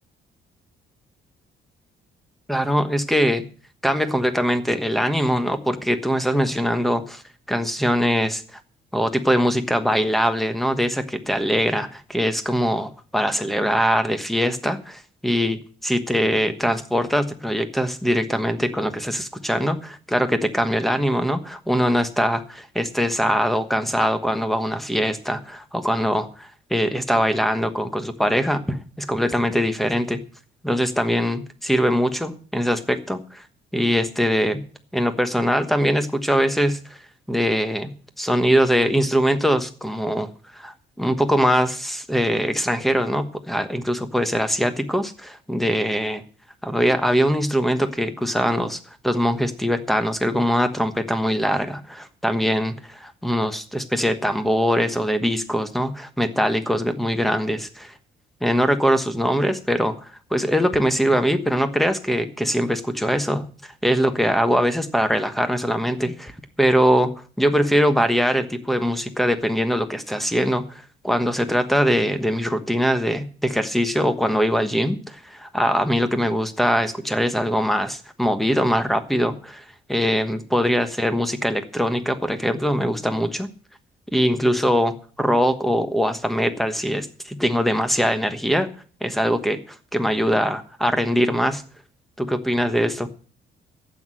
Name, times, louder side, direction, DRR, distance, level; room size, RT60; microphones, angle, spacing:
voice 1, 2.5-3.4 3.8-7.2 7.5-8.6 8.9-30.2 30.6-33.4 33.7-34.6 34.9-37.0 37.3-37.9 38.2-40.3 40.5-46.2 46.6-48.8 49.0-57.9 58.4-59.9 60.3-66.3 66.6-67.1 67.4-79.6 79.9-83.5 84.1-88.7 89.0-91.6 92.2-93.1, equal, ahead, 9 dB, 1.2 m, -22 dB
12.0 x 8.4 x 7.6 m, 0.41 s
cardioid pair, 140°, 19 cm